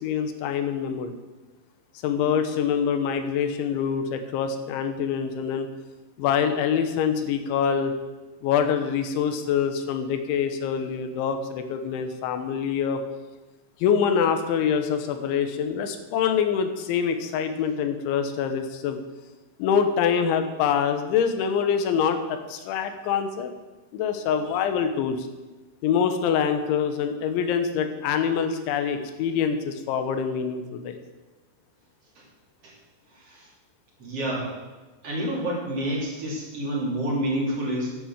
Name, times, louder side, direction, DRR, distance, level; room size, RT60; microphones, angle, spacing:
voice 1, 0.0-1.2 2.0-5.7 6.2-7.9 8.4-13.0 13.8-19.0 19.6-23.5 23.9-25.3 25.8-31.0, left 7 dB, 75° left, 7 dB, 3.4 m, -25 dB
voice 2, 33.1-33.5 34.0-34.5 35.0-37.9, right 1 dB, 35° right, -4 dB, 3.8 m, -28 dB
11.0 x 10.0 x 7.4 m, 1.2 s
omnidirectional pair, 5.5 m